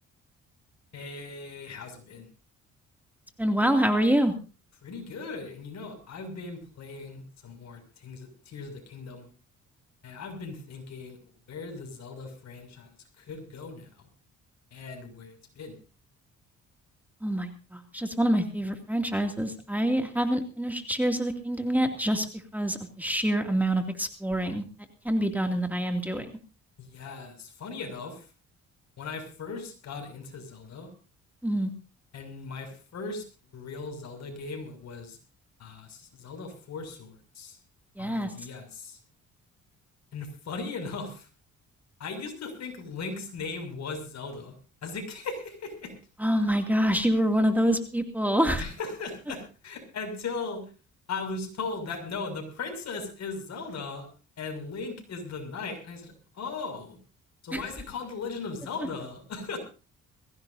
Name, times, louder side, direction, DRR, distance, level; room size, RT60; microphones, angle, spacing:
voice 1, 0.9-2.3 4.8-9.3 10.0-11.2 11.5-14.1 14.7-15.8 26.8-28.3 29.0-30.9 32.1-33.2 33.5-35.2 35.6-37.6 38.0-39.0 40.1-41.3 42.0-44.6 44.8-45.9 48.6-50.6 51.1-54.1 54.4-57.0 57.4-59.6, left 4 dB, 60° left, 5 dB, 6.5 m, -38 dB
voice 2, 3.4-4.3 17.2-22.3 22.5-24.6 25.0-26.3 31.4-31.7 38.0-38.3 46.2-48.6 57.5-57.6, equal, 5° right, 5 dB, 2.4 m, -26 dB
22.0 x 16.5 x 2.7 m, 0.34 s
cardioid pair, 90°, 30 cm